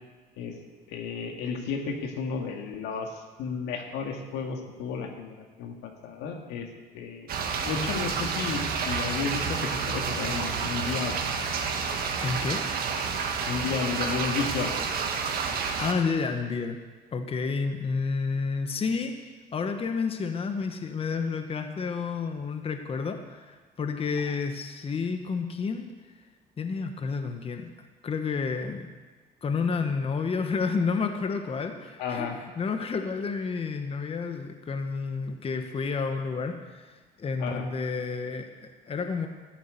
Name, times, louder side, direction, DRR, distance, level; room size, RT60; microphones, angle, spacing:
voice 1, 0.9-6.7 6.9-7.3 7.5-11.2 13.5-14.7 32.0-32.4 37.4-37.6, left 5 dB, 90° left, 3 dB, 1.9 m, -32 dB
sound 1, 7.3-15.9, right 5 dB, 65° right, 1.7 m, -29 dB
voice 2, 12.2-12.6 15.8-16.8 17.1-19.1 19.5-25.9 26.6-27.7 28.0-28.8 29.4-39.3, left 5 dB, 35° left, 6 dB, 1.2 m, -30 dB
13.5 x 8.0 x 8.2 m, 1.3 s
cardioid pair, 110°, 17 cm